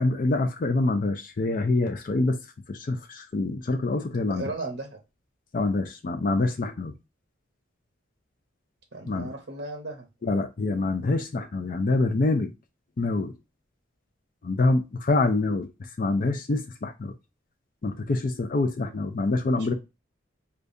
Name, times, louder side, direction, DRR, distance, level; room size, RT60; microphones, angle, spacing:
voice 1, 0.0-2.4 2.7-4.5 5.5-7.0 9.1-9.3 10.2-12.5 13.0-13.4 14.4-17.1 17.8-19.7, left 2 dB, 40° left, 0.4 m, -26 dB
voice 2, 4.3-5.0 8.9-10.1 19.6-19.7, right 2 dB, 60° right, 0.7 m, -36 dB
5.0 x 2.2 x 2.5 m
head